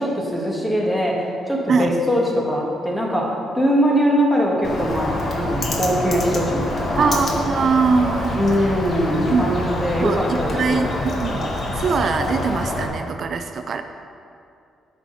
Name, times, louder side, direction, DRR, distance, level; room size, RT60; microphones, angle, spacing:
voice 1, 0.0-7.1 8.3-10.9, equal, 5° left, -2 dB, 1.9 m, -21 dB
Bird, 4.6-12.9, left 1 dB, 45° left, 1.4 m, -26 dB
voice 2, 7.0-8.4 9.3-9.7 10.0-13.8, right 5 dB, 55° right, 7 dB, 0.4 m, -22 dB
10.5 x 6.3 x 4.1 m, 2.5 s
cardioid pair, 90°, 0 cm